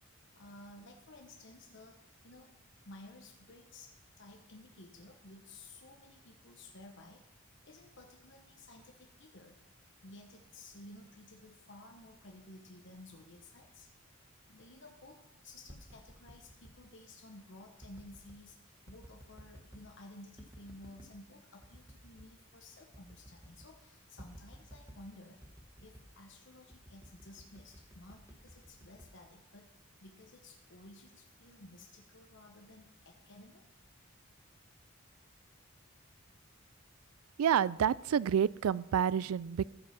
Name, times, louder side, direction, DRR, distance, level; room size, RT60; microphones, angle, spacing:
voice 1, 0.3-2.6 2.8-7.2 7.6-9.6 10.0-13.9 14.5-25.4 25.8-29.7 30.0-33.6, left 2 dB, 55° left, 2 dB, 1.1 m, -54 dB
sound 1, 15.4-16.8 17.8-18.4 18.9-19.9 20.4-21.2 21.6-22.3 22.6-22.7 22.9-23.8 24.2-25.1 25.4-26.2 26.7-29.8 30.2-30.6, equal, 15° right, 1.1 m, -55 dB
voice 2, 37.4-39.7, right 8 dB, 90° right, 21 dB, 0.3 m, -29 dB
14.5 x 6.1 x 5.9 m, 0.90 s
head